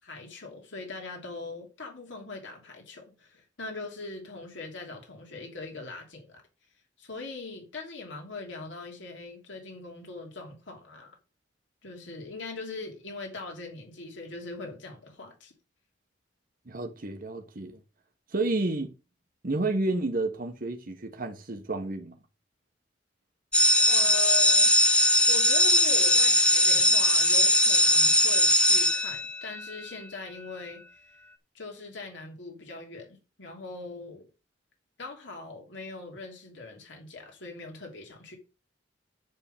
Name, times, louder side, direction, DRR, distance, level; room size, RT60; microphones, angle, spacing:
voice 1, 0.0-6.4 7.0-11.2 11.8-15.5 23.9-24.7 25.3-30.8 31.5-34.3 35.0-38.4, left 3 dB, 75° left, 2.9 m, -41 dB
voice 2, 16.7-17.8 18.3-18.9 19.4-22.2, right 2 dB, 50° right, 1.2 m, -30 dB
sound 1, 23.5-29.7, left 1 dB, 5° left, 1.0 m, -21 dB
9.7 x 3.8 x 7.1 m
head